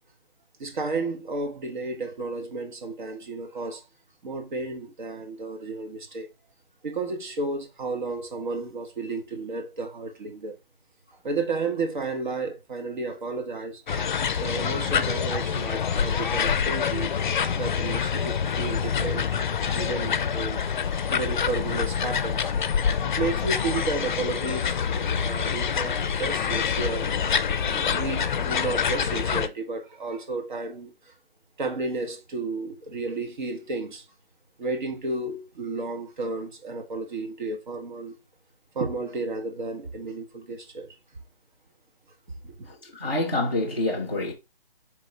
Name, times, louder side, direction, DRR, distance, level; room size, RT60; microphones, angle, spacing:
voice 1, 0.6-3.9 4.2-6.3 6.8-10.6 11.2-13.8 14.4-17.1 17.6-19.4 19.7-22.5 23.0-24.8 25.2-27.2 27.6-31.1 31.6-34.0 34.6-38.2 38.7-40.9 42.4-42.7, right 3 dB, 55° right, 1.1 m, -32 dB
sound 1, 13.9-29.5, left 7 dB, 55° left, 0.4 m, -26 dB
voice 2, 42.7-44.3, left 2 dB, 15° right, 0.4 m, -27 dB
4.0 x 3.6 x 3.1 m
figure-of-eight pair, 150°, 29 cm